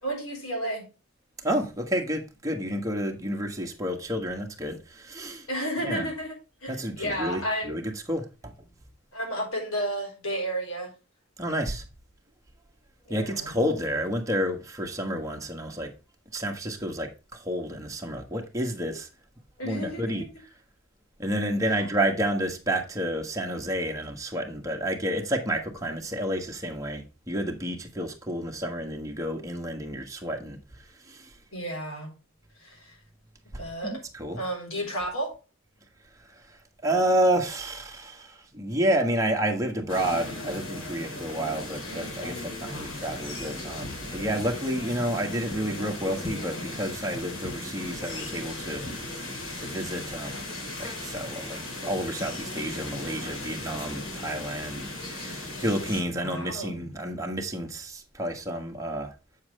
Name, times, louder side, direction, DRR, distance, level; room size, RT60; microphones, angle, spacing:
voice 1, 0.0-0.9 5.5-6.3 6.6-7.8 9.1-10.9 13.1-13.5 19.6-20.2 21.6-21.8 31.5-32.1 32.6-33.0 33.6-34.0 34.4-35.3 56.1-56.8, right 1 dB, 80° left, 3.9 m, -32 dB
voice 2, 1.4-5.5 5.8-6.1 6.7-8.5 11.4-11.8 13.1-15.9 16.3-19.1 19.6-20.2 21.2-31.3 33.5-34.4 36.8-48.8 49.6-50.4 50.8-59.1, right 1 dB, 15° right, 1.3 m, -30 dB
sound 1, 39.9-56.0, left 2 dB, 65° left, 2.9 m, -37 dB
7.5 x 7.1 x 3.2 m
head